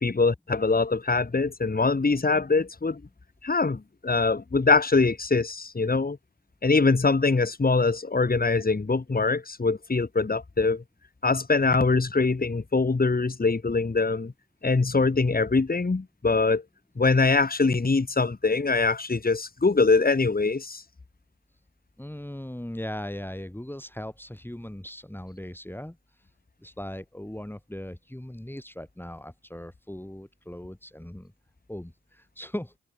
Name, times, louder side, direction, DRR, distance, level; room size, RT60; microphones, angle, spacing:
voice 1, 0.0-3.0 3.4-6.2 6.6-10.8 11.2-14.3 14.6-16.6 17.0-20.8, left 3 dB, 30° left, 1.8 m, -23 dB
voice 2, 22.0-26.3 26.6-31.3 31.7-32.7, left 1 dB, 5° left, 3.9 m, -38 dB
cardioid pair, 50°, 31 cm